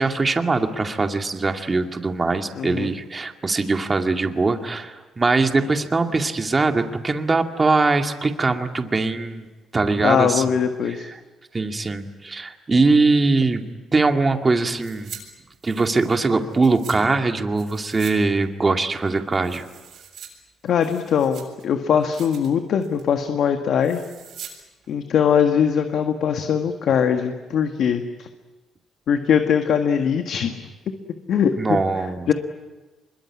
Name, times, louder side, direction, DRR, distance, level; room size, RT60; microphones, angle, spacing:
voice 1, 0.0-9.5 9.7-10.5 10.9-11.0 11.5-13.6 13.9-15.1 15.6-19.6 31.6-32.3, right 3 dB, 30° right, 6 dB, 2.2 m, -21 dB
voice 2, 2.5-2.9 10.0-11.1 20.6-24.0 24.9-28.3 29.1-30.5 31.3-31.8 32.3-32.4, left 7 dB, 70° left, 6 dB, 1.7 m, -21 dB
sound 1, 14.8-15.2 15.5-17.0 17.5-18.2 18.4-18.5 19.0-20.3 20.7-21.6 22.0-22.5 22.8-23.1 23.8-24.5 24.8-24.9, right 8 dB, 70° right, 7.4 m, -42 dB
25.0 x 22.5 x 9.8 m, 1.2 s
cardioid pair, 90°, 0 cm